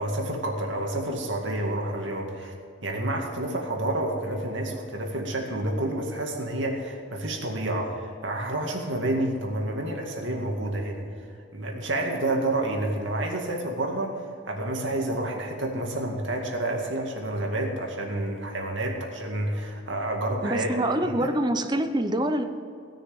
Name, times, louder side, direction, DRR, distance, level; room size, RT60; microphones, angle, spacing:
voice 1, 0.0-2.5 2.8-11.0 11.5-21.3, right 1 dB, 65° right, 1 dB, 2.1 m, -29 dB
voice 2, 20.4-22.4, right 1 dB, 20° right, 8 dB, 0.7 m, -25 dB
17.5 x 6.5 x 9.4 m, 2.5 s
head